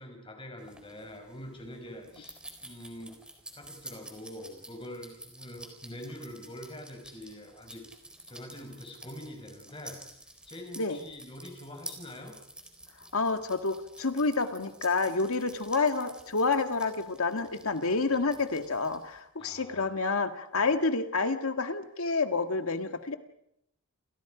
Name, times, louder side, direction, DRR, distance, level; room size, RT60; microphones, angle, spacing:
voice 1, 0.0-3.2 3.5-7.8 8.3-12.3 19.4-19.8, left 1 dB, 25° left, 4 dB, 5.0 m, -45 dB
sound 1, 0.6-19.2, right 1 dB, 5° right, 4.2 m, -50 dB
voice 2, 13.1-23.1, left 3 dB, 85° left, 7 dB, 1.9 m, -29 dB
28.5 x 28.5 x 5.1 m, 0.76 s
head